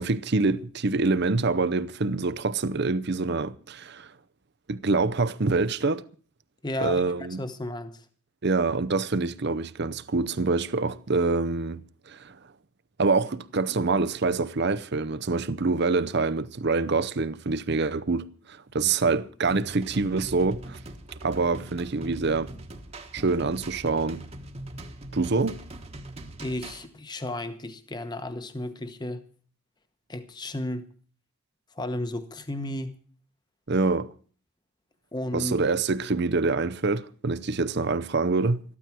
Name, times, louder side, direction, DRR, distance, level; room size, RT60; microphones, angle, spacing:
voice 1, 0.0-4.2 4.7-6.1 6.8-7.4 8.4-12.5 13.0-20.8 21.1-22.5 23.1-24.2 25.1-25.6 33.7-34.1 35.3-38.6, right 3 dB, 50° right, 0.7 m, -26 dB
voice 2, 6.6-7.0 7.4-8.0 26.4-29.2 30.1-30.9 31.7-32.9 35.1-35.5, left 1 dB, 20° left, 1.1 m, -33 dB
sound 1, 19.5-26.9, right 1 dB, 30° right, 1.3 m, -42 dB
14.5 x 12.5 x 6.0 m
head